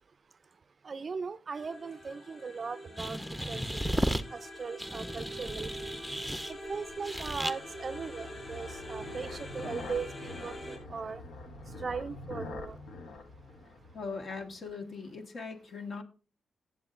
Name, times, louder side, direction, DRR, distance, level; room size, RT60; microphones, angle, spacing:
voice 1, 0.8-3.2 3.5-3.6 4.0-5.9 6.5-11.2 11.8-12.8, right 5 dB, 45° right, 0.4 m, -39 dB
sound 1, 1.5-10.8, equal, 25° left, 6.0 m, -45 dB
sound 2, 3.0-4.2 4.8-6.5 7.0-7.5, equal, 5° left, 0.7 m, -34 dB
sound 3, 5.4-14.7, left 2 dB, 80° left, 1.0 m, -46 dB
voice 2, 13.9-16.0, left 4 dB, 65° left, 1.5 m, -40 dB
16.0 x 7.2 x 2.4 m
cardioid pair, 65°, 0 cm